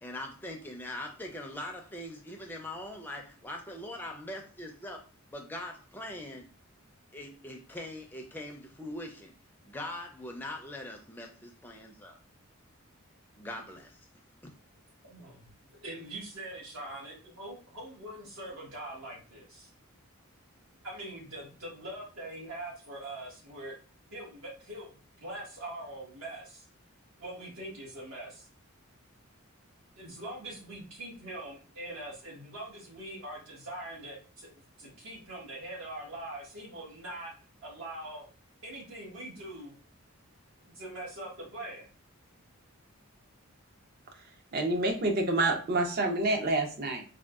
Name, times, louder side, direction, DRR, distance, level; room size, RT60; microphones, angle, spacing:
voice 1, 0.0-5.0 5.3-6.5 7.1-9.3 9.6-12.2 13.4-14.0, left 1 dB, 10° left, 0.4 m, -42 dB
voice 2, 15.0-15.4 15.8-19.7 20.8-23.8 24.1-26.6 27.2-28.5 30.0-34.5 34.8-37.3 37.6-38.2 38.6-39.8 40.7-41.9, right 1 dB, 75° right, 1.4 m, -43 dB
voice 3, 44.5-47.0, right 2 dB, 45° right, 0.5 m, -28 dB
3.6 x 2.2 x 2.3 m
head